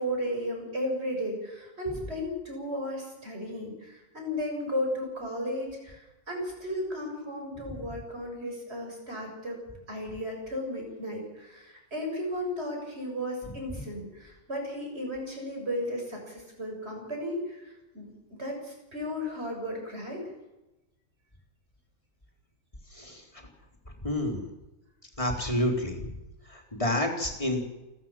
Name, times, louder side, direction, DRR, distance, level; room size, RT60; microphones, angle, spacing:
voice 1, 0.0-9.6 9.9-20.2, equal, 50° right, 1 dB, 7.5 m, -34 dB
voice 2, 24.0-24.4 25.2-26.0 26.5-27.6, left 1 dB, 25° left, 2 dB, 4.0 m, -28 dB
29.0 x 13.0 x 7.5 m, 1.0 s
omnidirectional pair, 1.4 m